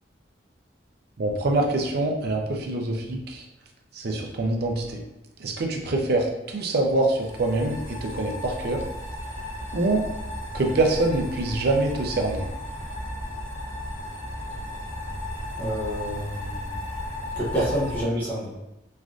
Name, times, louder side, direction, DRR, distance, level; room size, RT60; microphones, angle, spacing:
voice 1, 1.2-3.4 3.9-5.0 5.4-8.8 9.7-10.0 10.5-12.4, right 2 dB, 55° right, 1 dB, 0.5 m, -25 dB
sound 1, 6.9-18.0, left 1 dB, 75° left, 0.9 m, -35 dB
voice 2, 15.6-16.8 17.4-18.5, equal, 10° left, -7 dB, 0.6 m, -28 dB
3.2 x 2.5 x 2.4 m, 0.92 s
head